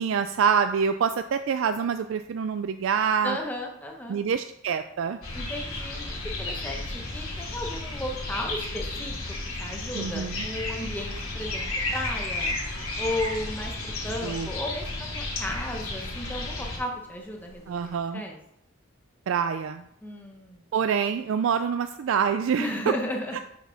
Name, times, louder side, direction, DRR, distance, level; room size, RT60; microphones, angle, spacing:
voice 1, 0.0-3.4 4.1-5.2 9.9-10.5 14.2-14.5 17.7-18.2 19.3-19.8 20.7-22.7 23.3-23.4, right 6 dB, 70° right, 9 dB, 0.3 m, -26 dB
voice 2, 3.2-4.2 5.3-9.1 9.6-12.5 13.0-18.4 20.0-20.6 22.6-23.4, left 1 dB, 10° left, 1 dB, 0.8 m, -34 dB
sound 1, 5.2-18.0, left 2 dB, 85° left, 2.6 m, -33 dB
5.7 x 4.8 x 5.7 m, 0.78 s
head